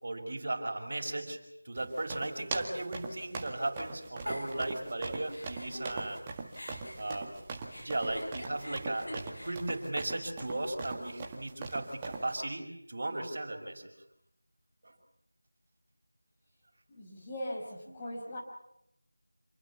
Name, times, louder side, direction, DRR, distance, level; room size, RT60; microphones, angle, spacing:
voice 1, 0.0-1.4 1.6-6.2 7.0-7.3 7.8-13.9 14.8-14.9 17.9-18.0, right 2 dB, 45° right, 3 dB, 5.7 m, -36 dB
sound 1, 1.8-12.3, right 3 dB, 15° right, 1.8 m, -42 dB
Giggle, 4.3-6.2 6.5-10.8, equal, 70° left, 7.1 m, -45 dB
voice 2, 16.9-18.4, equal, 15° left, -3 dB, 5.0 m, -40 dB
28.0 x 22.0 x 7.2 m, 0.78 s
figure-of-eight pair, 170°, 0 cm